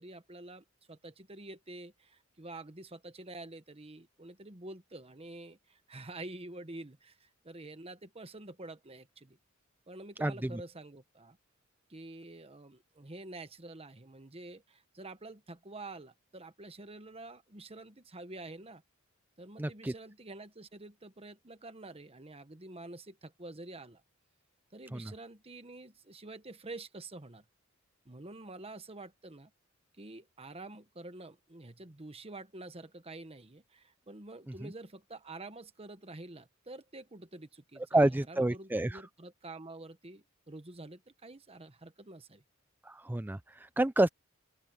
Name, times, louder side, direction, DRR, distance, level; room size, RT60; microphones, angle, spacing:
voice 1, 0.0-9.4 9.9-11.4 11.9-18.8 19.4-24.0 24.7-27.4 28.0-29.5 30.0-42.4, right 2 dB, 30° right, 1.3 m, -48 dB
voice 2, 10.2-10.6 19.6-19.9 24.9-25.1 37.9-38.9 42.9-44.1, right 1 dB, 10° right, 0.4 m, -29 dB
open air
head